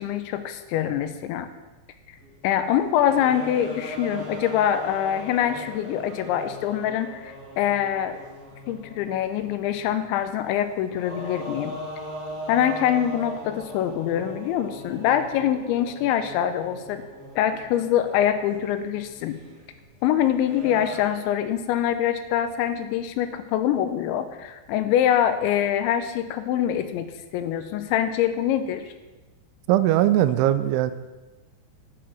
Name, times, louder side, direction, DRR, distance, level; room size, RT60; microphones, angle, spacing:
voice 1, 0.0-1.5 2.4-8.2 8.7-11.8 12.5-17.0 17.4-19.4 20.0-28.9, left 10 dB, 80° left, 9 dB, 3.0 m, -24 dB
sound 1, 2.2-2.3 2.8-10.0 10.7-21.1, equal, 35° right, 3.1 m, -39 dB
voice 2, 29.7-30.9, right 13 dB, 85° right, 12 dB, 3.0 m, -20 dB
10.5 x 9.0 x 6.2 m, 1.1 s
omnidirectional pair, 5.4 m